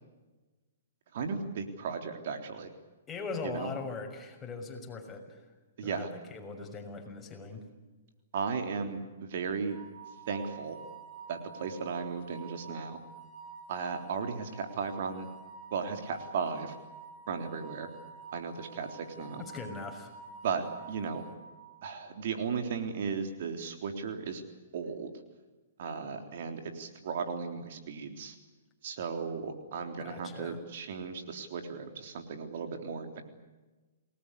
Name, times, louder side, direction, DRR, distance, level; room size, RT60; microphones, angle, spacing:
voice 1, 1.1-2.7 3.5-3.7 5.8-6.1 8.3-9.8 10.3-10.8 11.3-13.0 13.7-15.3 15.7-16.7 17.3-17.9 18.3-19.4 20.4-21.3 21.8-24.4 24.7-25.1 25.8-28.4 28.8-33.2, right 5 dB, 60° right, 6 dB, 3.6 m, -35 dB
voice 2, 3.1-5.5 5.8-7.7 19.4-20.1 30.0-30.6, left 4 dB, 15° left, 2 dB, 6.3 m, -40 dB
sound 1, 9.7-21.9, right 5 dB, 10° right, 7.2 m, -49 dB
28.5 x 20.0 x 8.4 m, 1.2 s
hypercardioid pair, 130°, 0 cm